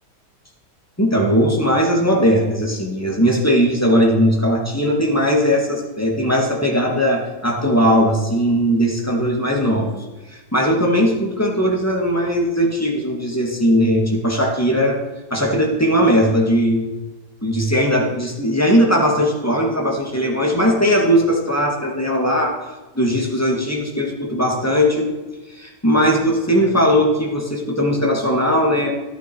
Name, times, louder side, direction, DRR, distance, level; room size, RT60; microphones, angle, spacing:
voice 1, 1.0-10.0 10.5-15.0 15.3-16.9 17.4-22.6 22.9-25.1 25.5-28.9, equal, 10° left, -1 dB, 2.1 m, -18 dB
15.0 x 11.5 x 4.7 m, 1.1 s
omnidirectional pair, 1.7 m